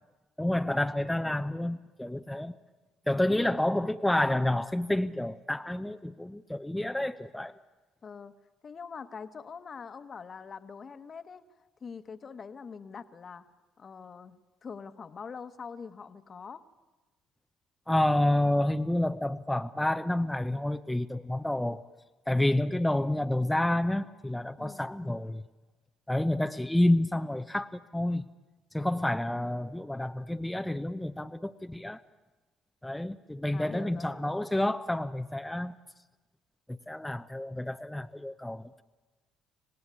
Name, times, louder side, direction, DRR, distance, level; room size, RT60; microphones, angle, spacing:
voice 1, 0.4-2.5 3.1-7.5 17.9-21.8 22.3-25.4 26.1-28.2 28.7-32.0 32.8-35.7 36.7-38.8, left 1 dB, 5° left, 7 dB, 0.8 m, -29 dB
voice 2, 8.0-8.3 8.6-11.4 11.8-13.5 13.8-16.7 24.6-24.8 33.5-34.5, left 5 dB, 40° left, 11 dB, 1.3 m, -44 dB
25.5 x 18.5 x 9.8 m, 1.2 s
hypercardioid pair, 50°, 0 cm